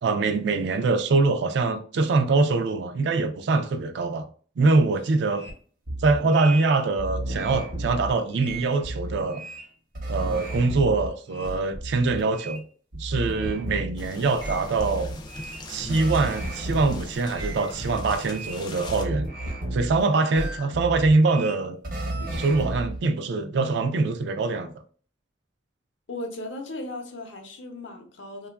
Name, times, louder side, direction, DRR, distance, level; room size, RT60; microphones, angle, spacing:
voice 1, 0.0-4.3 4.6-5.5 6.0-9.4 10.1-12.6 12.9-15.1 15.7-19.3 19.7-21.8 22.3-24.7, right 3 dB, 65° right, 0.3 m, -23 dB
sound 1, 5.3-5.5 5.9-6.7 7.0-9.7 9.9-12.6 12.9-14.1 14.3-17.0 17.3-20.0 20.3-23.0, right 1 dB, 50° right, 0.7 m, -33 dB
sound 2, 14.0-19.1, left 2 dB, 25° left, 0.3 m, -41 dB
voice 2, 26.1-28.5, left 2 dB, 75° left, 0.6 m, -36 dB
2.8 x 2.3 x 2.2 m
head